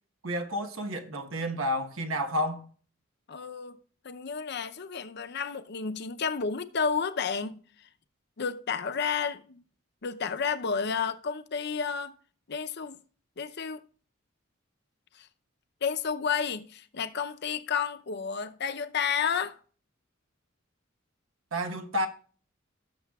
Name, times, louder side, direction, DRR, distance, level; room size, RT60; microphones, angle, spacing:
voice 1, 0.2-2.7 21.5-22.1, equal, 85° right, 1.2 m, -30 dB
voice 2, 3.3-3.8 4.0-7.6 8.4-9.6 10.0-12.2 12.5-13.0 13.4-13.8 15.1-15.3 15.8-19.6, left 6 dB, 55° left, 0.7 m, -31 dB
17.5 x 6.9 x 2.3 m
head